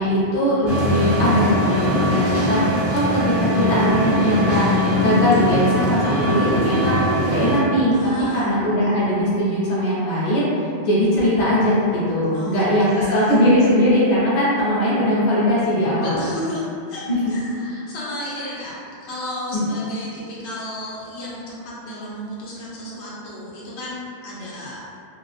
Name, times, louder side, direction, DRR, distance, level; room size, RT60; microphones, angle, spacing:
voice 1, 0.0-4.7 4.9-7.0 7.3-7.9 8.3-10.5 10.8-16.2 17.1-17.3 19.5-19.6, equal, 45° left, -9 dB, 0.8 m, -20 dB
sound 1, 0.7-7.6, left 1 dB, 45° right, 0.5 m, -21 dB
voice 2, 7.9-8.5 12.3-13.4 16.0-17.0 17.3-18.7 19.0-24.8, left 1 dB, 90° left, -7 dB, 0.9 m, -33 dB
2.3 x 2.3 x 2.4 m, 2.5 s
omnidirectional pair, 1.1 m